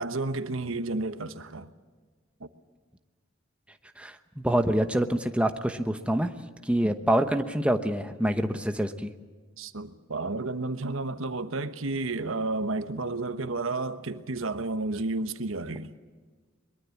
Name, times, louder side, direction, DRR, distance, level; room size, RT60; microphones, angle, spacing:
voice 1, 0.0-1.7 2.4-2.5 6.8-6.9 9.6-15.9, right 2 dB, 80° right, 1.2 m, -31 dB
voice 2, 4.0-6.3 6.7-9.1, right 1 dB, 5° right, 1.0 m, -26 dB
23.0 x 22.0 x 7.2 m
head